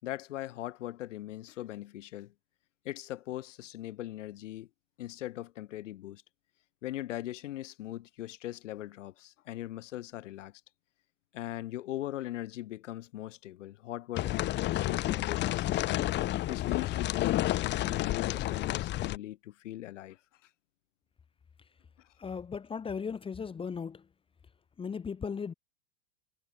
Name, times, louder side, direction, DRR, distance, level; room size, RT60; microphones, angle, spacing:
voice 1, 0.0-2.3 2.8-4.7 5.0-6.2 6.8-10.5 11.3-16.0 16.5-20.2, left 14 dB, 80° left, 5.4 m, -40 dB
sound 1, 14.1-19.2, left 15 dB, 30° left, 1.0 m, -30 dB
voice 2, 22.2-24.1 24.8-25.5, left 6 dB, 15° left, 1.5 m, -37 dB
supercardioid pair, 140°, 37 cm